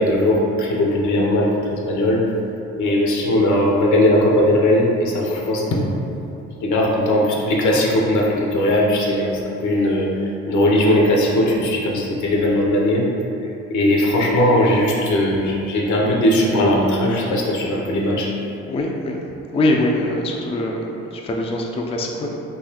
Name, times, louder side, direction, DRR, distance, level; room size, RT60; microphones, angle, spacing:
voice 1, 0.0-2.2 2.7-5.9 6.6-13.0 13.7-18.3, left 1 dB, 75° left, -2 dB, 0.7 m, -18 dB
voice 2, 18.7-19.2 19.5-22.3, left 1 dB, 20° left, 0 dB, 0.3 m, -23 dB
4.0 x 2.7 x 2.8 m, 2.8 s
cardioid pair, 90°, 30 cm